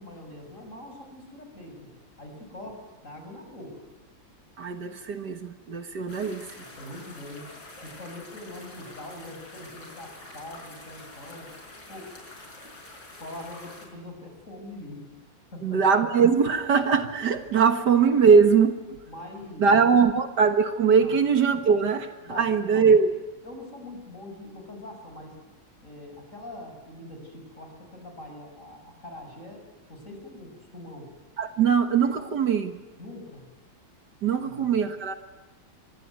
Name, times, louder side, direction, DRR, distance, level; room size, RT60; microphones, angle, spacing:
voice 1, 0.0-1.9 2.2-3.8 6.6-7.5 7.8-11.5 11.9-12.1 13.2-15.0 15.5-15.8 19.1-20.0 21.0-21.1 22.2-22.9 23.4-25.4 25.8-31.1 31.6-31.8 33.0-33.4 34.4-34.8, left 1 dB, 40° left, 4 dB, 6.8 m, -43 dB
voice 2, 4.6-6.5 15.6-19.0 19.6-23.1 31.4-32.8 34.2-35.1, right 6 dB, 65° right, 7 dB, 2.0 m, -21 dB
sound 1, 6.1-13.9, left 2 dB, 70° left, 6.4 m, -46 dB
26.0 x 23.5 x 9.4 m, 1.2 s
omnidirectional pair, 2.0 m